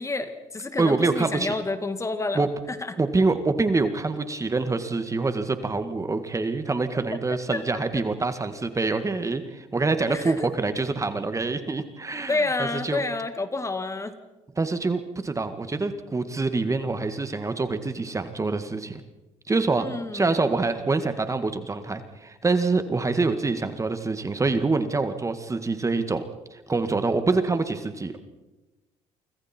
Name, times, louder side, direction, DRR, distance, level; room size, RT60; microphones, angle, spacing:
voice 1, 0.0-2.9 7.5-7.6 10.1-10.5 12.3-14.2 19.8-20.4, left 3 dB, 25° left, 9 dB, 2.2 m, -29 dB
voice 2, 0.8-1.5 2.3-2.5 3.0-13.0 14.6-19.0 19.5-19.9 20.1-26.2 26.5-28.2, right 3 dB, 25° right, 9 dB, 1.9 m, -25 dB
28.0 x 25.5 x 4.5 m, 1.1 s
supercardioid pair, 75°, 13 cm